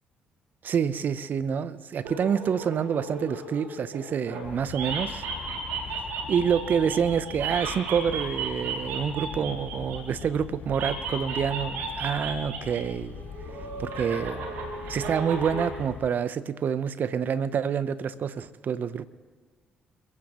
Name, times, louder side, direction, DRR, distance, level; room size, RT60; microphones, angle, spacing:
voice 1, 0.6-5.2 6.3-13.2 13.8-14.4 14.9-19.1, right 7 dB, 55° right, 0.8 m, -27 dB
sound 1, 2.0-4.4 4.7-10.3 10.7-12.8 13.1-15.7, right 4 dB, 70° right, 2.8 m, -35 dB
sound 2, 4.4-16.1, left 8 dB, 55° left, 0.6 m, -42 dB
28.0 x 16.0 x 3.1 m
hypercardioid pair, 45°, 4 cm